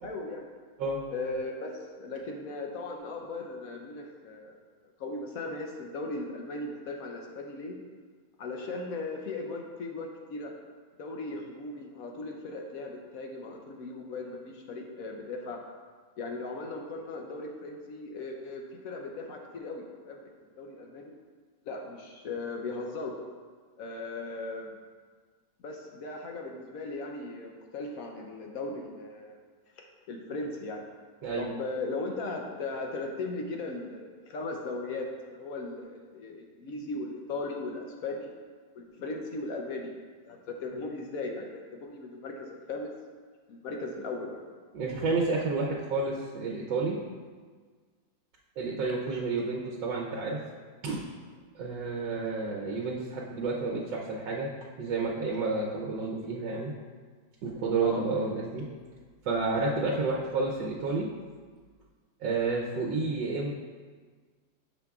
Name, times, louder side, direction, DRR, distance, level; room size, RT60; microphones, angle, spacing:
voice 1, 0.0-0.5 1.1-4.6 5.0-7.8 8.4-10.5 11.0-15.6 16.2-20.3 20.6-21.2 21.7-23.1 23.8-24.8 25.6-29.4 29.8-30.8 31.4-38.3 38.7-39.9 40.3-42.9 43.5-44.4 57.8-58.1, left 3 dB, 65° left, 2 dB, 0.9 m, -37 dB
voice 2, 44.7-47.0 48.6-50.4 50.8-51.0 51.5-54.5 54.8-56.7 57.4-58.7 59.2-61.1 62.2-63.5, right 3 dB, 75° right, -3 dB, 1.4 m, -30 dB
10.0 x 6.2 x 2.4 m, 1.5 s
omnidirectional pair, 2.1 m